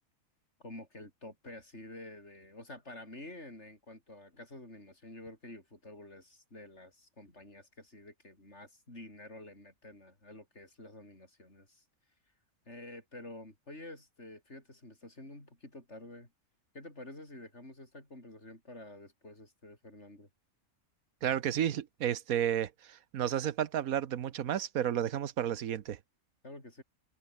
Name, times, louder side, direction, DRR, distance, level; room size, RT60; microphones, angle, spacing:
voice 1, 0.6-11.8 12.7-16.3 16.7-20.3 26.4-26.8, left 1 dB, 50° left, 7.8 m, -49 dB
voice 2, 21.2-26.0, right 10 dB, 80° right, 1.4 m, -32 dB
omnidirectional pair, 1.5 m